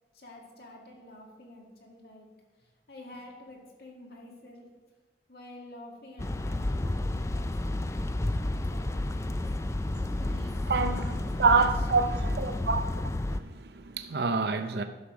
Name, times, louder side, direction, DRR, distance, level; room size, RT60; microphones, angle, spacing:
voice 1, 0.1-4.7 5.3-9.4 10.2-10.5 10.9-11.5 11.9-12.7, left 1 dB, 55° left, 2.0 m, -49 dB
sound 1, 6.2-13.4, left 1 dB, 15° left, 0.3 m, -31 dB
voice 2, 10.7-11.0 11.4-13.0 13.3-14.8, right 4 dB, 60° right, 0.5 m, -27 dB
12.0 x 6.5 x 5.0 m
head